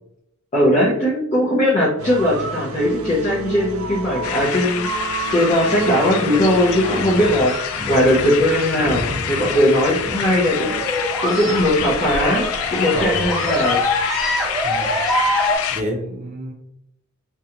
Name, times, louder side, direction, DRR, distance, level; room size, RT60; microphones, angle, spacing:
voice 1, 0.5-5.0 5.3-7.5 7.9-12.4 12.7-13.8, left 1 dB, 35° left, -7 dB, 0.6 m, -19 dB
sound 1, 2.0-7.5, right 3 dB, 75° right, 0.4 m, -31 dB
sound 2, 4.2-15.8, left 8 dB, 80° left, 0.3 m, -27 dB
voice 2, 6.8-7.2 12.9-13.3 14.6-15.0 15.7-16.5, right 1 dB, 35° right, 1 dB, 0.7 m, -29 dB
sound 3, 7.1-15.6, left 1 dB, ahead, 1.0 m, -25 dB
2.6 x 2.3 x 2.8 m, 0.77 s
head